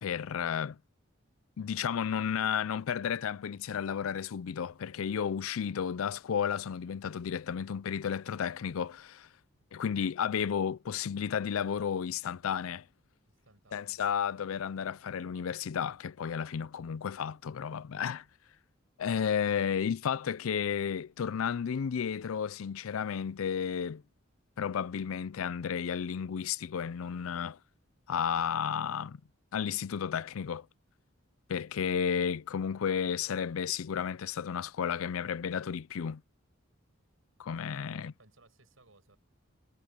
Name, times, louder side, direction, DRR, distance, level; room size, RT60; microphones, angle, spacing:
voice 1, 0.0-0.8 1.6-9.3 9.7-12.8 13.7-18.2 19.0-24.0 24.6-27.6 28.1-29.2 29.5-30.7 31.5-36.2 37.4-38.1, left 7 dB, 90° left, 0.4 m, -32 dB
voice 2, 9.5-10.0 13.3-14.0 37.9-39.2, right 3 dB, 80° right, 6.1 m, -63 dB
head